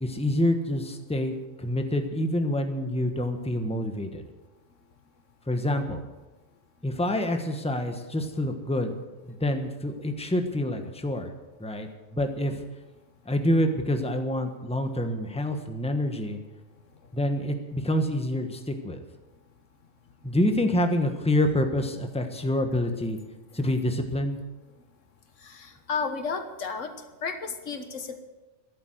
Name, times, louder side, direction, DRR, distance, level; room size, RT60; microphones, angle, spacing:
voice 1, 0.0-4.2 5.5-6.0 6.8-8.9 9.2-11.3 11.6-12.6 13.3-16.4 17.1-19.0 20.2-23.2 23.5-24.4, left 1 dB, 5° left, 6 dB, 1.2 m, -27 dB
voice 2, 25.4-26.9 27.2-28.2, left 5 dB, 80° left, 8 dB, 1.7 m, -32 dB
13.0 x 11.5 x 7.9 m, 1.2 s
omnidirectional pair, 1.3 m